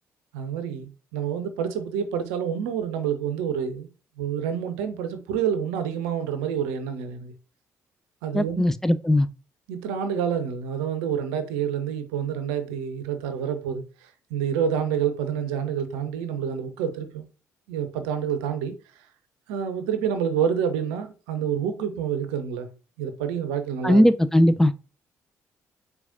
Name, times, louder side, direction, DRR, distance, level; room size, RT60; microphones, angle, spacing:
voice 1, 0.3-3.9 4.2-7.3 8.2-8.7 9.7-17.3 17.7-18.8 19.5-22.7 23.0-24.0, right 8 dB, 75° right, 0.5 m, -28 dB
voice 2, 8.3-9.3 23.8-24.7, left 1 dB, 5° left, 0.4 m, -19 dB
4.7 x 3.3 x 2.5 m
hypercardioid pair, 45°, 8 cm